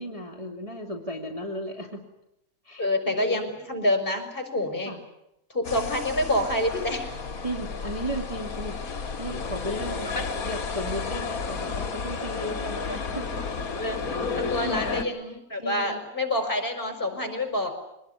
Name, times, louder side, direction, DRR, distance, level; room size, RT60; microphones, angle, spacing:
voice 1, 0.0-2.0 2.6-3.5 4.8-5.0 7.4-8.8 9.2-10.1 10.4-13.3 14.6-14.8 15.6-16.0, equal, 20° right, 0 dB, 2.8 m, -35 dB
voice 2, 2.8-4.9 5.5-7.2 10.1-10.3 13.8-14.0 14.4-17.7, left 1 dB, 25° left, 6 dB, 4.9 m, -27 dB
sound 1, 5.6-15.0, left 4 dB, 50° left, 2.3 m, -32 dB
24.5 x 20.0 x 9.8 m, 0.85 s
omnidirectional pair, 2.0 m